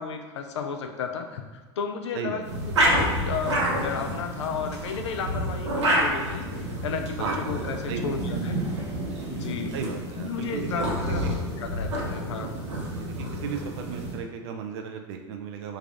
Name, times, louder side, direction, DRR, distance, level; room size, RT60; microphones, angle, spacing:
voice 1, 0.0-8.6 9.3-9.8 10.2-12.6, left 6 dB, 80° left, 5 dB, 0.4 m, -33 dB
sound 1, 2.4-14.2, right 1 dB, 90° right, 0.9 m, -29 dB
voice 2, 9.7-11.3 13.0-13.1 13.4-15.8, right 6 dB, 70° right, 4 dB, 0.4 m, -35 dB
3.3 x 2.4 x 3.4 m, 1.4 s
hypercardioid pair, 90°, 14 cm